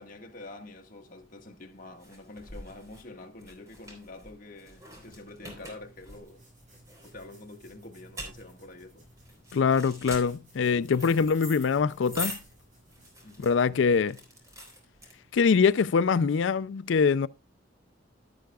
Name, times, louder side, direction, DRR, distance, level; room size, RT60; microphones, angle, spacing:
voice 1, 0.0-6.4 7.0-9.1 13.2-13.5, left 2 dB, 45° left, 1.6 m, -47 dB
sound 1, 1.2-15.6, equal, 15° right, 3.6 m, -44 dB
sound 2, 4.8-14.0, right 1 dB, 40° right, 6.2 m, -58 dB
voice 2, 9.5-12.4 13.4-14.2 15.3-17.3, left 5 dB, 80° left, 0.4 m, -23 dB
11.5 x 11.5 x 2.3 m
head